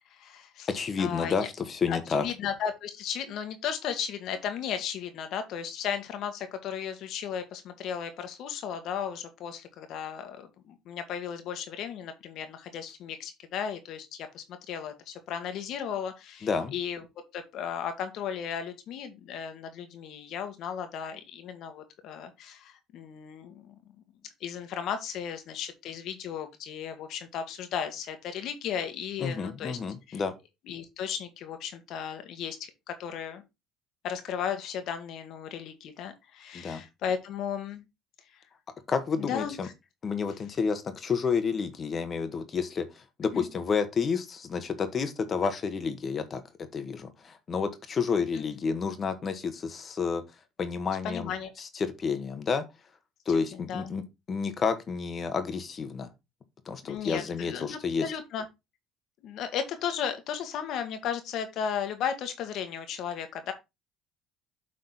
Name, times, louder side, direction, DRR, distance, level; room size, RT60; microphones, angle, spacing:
voice 1, 0.1-0.7 1.0-1.4 1.9-17.0 17.3-23.7 24.4-29.8 30.1-30.2 30.7-33.4 34.0-37.8 38.3-38.4 39.2-39.7 43.3-43.4 48.3-48.4 51.0-51.5 53.5-53.9 56.9-58.4 59.2-63.5, left 8 dB, 65° left, 1.8 m, -35 dB
voice 2, 0.7-2.2 16.4-16.7 29.2-30.3 36.5-36.8 38.9-39.7 40.0-42.8 43.2-46.4 46.7-50.2 50.6-51.3 51.6-52.6 53.3-54.0 54.3-56.1 56.7-58.1, left 5 dB, 40° left, 1.5 m, -30 dB
7.9 x 4.2 x 4.2 m
supercardioid pair, 80°, 0 cm